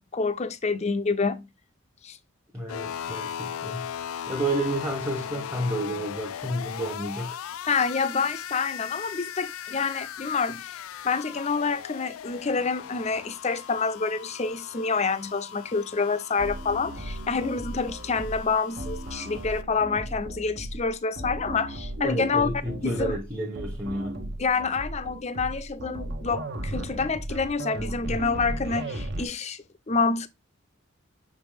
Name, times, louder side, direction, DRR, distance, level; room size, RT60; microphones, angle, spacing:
voice 1, 0.0-1.5 2.0-2.2 7.7-22.5 22.8-23.2 24.4-30.3, left 4 dB, 30° left, 0.5 m, -27 dB
voice 2, 2.5-7.4 22.0-24.2, right 1 dB, 10° right, 0.9 m, -31 dB
sound 1, 2.7-19.6, left 9 dB, 85° left, 0.4 m, -38 dB
sound 2, 16.4-29.3, right 1 dB, 55° right, 0.9 m, -36 dB
6.0 x 5.1 x 3.4 m
head